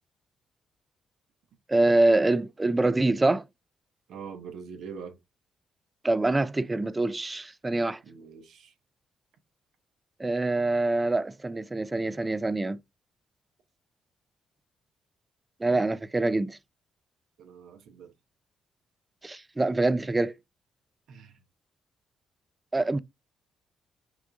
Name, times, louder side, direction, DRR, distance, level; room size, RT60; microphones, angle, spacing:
voice 1, 1.7-3.4 6.0-8.0 10.2-12.8 15.6-16.6 19.2-20.4 22.7-23.0, right 2 dB, 20° right, 0.3 m, -25 dB
voice 2, 4.1-5.2 8.0-8.7 17.4-18.1 21.1-21.4, right 6 dB, 75° right, 0.9 m, -43 dB
6.0 x 2.6 x 2.4 m
cardioid pair, 85°, 0 cm